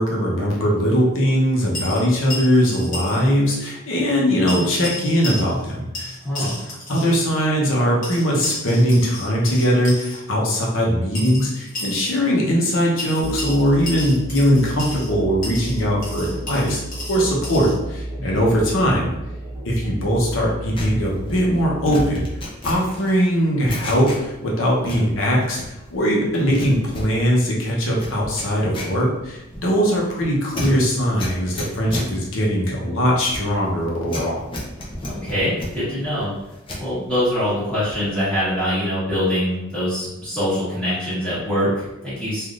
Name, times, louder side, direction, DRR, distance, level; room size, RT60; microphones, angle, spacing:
voice 1, 0.0-6.5 6.9-16.8 17.1-19.1 19.6-22.2 22.6-25.6 25.9-34.5, equal, 70° left, -3 dB, 0.8 m, -20 dB
sound 1, 1.7-3.2 3.5-3.6 4.5-5.7 5.9-7.1 8.0-10.2 11.1-12.2 13.0-15.1 15.4-17.8, left 1 dB, 40° left, 1.0 m, -33 dB
voice 2, 6.2-6.5 18.2-18.5 35.1-36.3 36.8-42.5, equal, 5° left, -14 dB, 1.2 m, -24 dB
Musical instrument, 13.2-22.4, right 1 dB, 30° right, 0.8 m, -33 dB
sound 2, 20.8-24.5 24.8-26.0 26.3-36.9 37.3-38.2 38.4-38.7, left 1 dB, 25° left, 0.5 m, -33 dB
3.4 x 2.4 x 2.4 m, 0.92 s
head